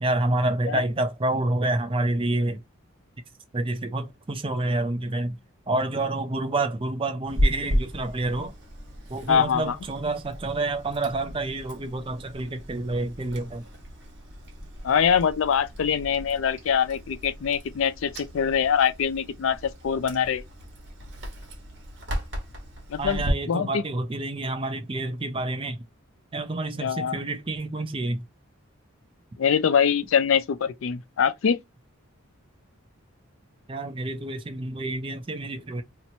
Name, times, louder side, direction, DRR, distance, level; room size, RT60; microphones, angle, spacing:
voice 1, 0.0-2.6 3.5-5.4 5.7-8.5 9.1-13.6 23.0-25.8 26.3-28.2 33.7-35.8, right 2 dB, 25° right, 0.4 m, -28 dB
Chewing mastication, 7.3-23.3, equal, 55° right, 1.1 m, -34 dB
voice 2, 9.3-9.8 14.8-20.4 22.9-23.8 26.8-27.3 29.4-31.6, left 7 dB, 65° left, 0.4 m, -24 dB
2.9 x 2.1 x 4.0 m
head